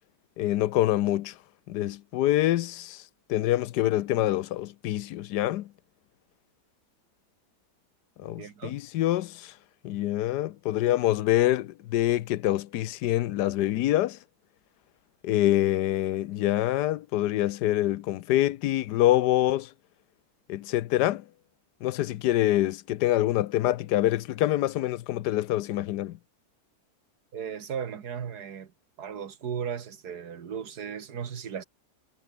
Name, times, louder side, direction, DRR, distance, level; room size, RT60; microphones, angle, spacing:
voice 1, 0.4-1.4 1.7-3.0 3.3-5.7 8.2-9.5 9.8-14.2 15.2-19.7 20.5-21.2 21.8-26.2, left 14 dB, 90° left, 1.3 m, -25 dB
voice 2, 8.2-8.8 27.3-28.7 29.0-31.6, right 7 dB, 75° right, 2.0 m, -36 dB
omnidirectional pair, 1.7 m